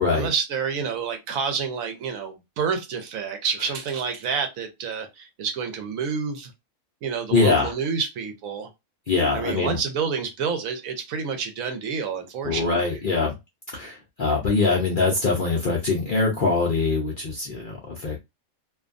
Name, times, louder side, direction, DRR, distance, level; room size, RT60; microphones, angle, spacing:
voice 1, 0.0-6.5 7.0-8.7 9.3-13.0, right 6 dB, 75° right, 1.1 m, -29 dB
voice 2, 7.3-7.7 9.1-9.8 12.4-13.3 13.7-18.2, left 4 dB, 60° left, 0.5 m, -23 dB
2.6 x 2.2 x 2.4 m
omnidirectional pair, 1.5 m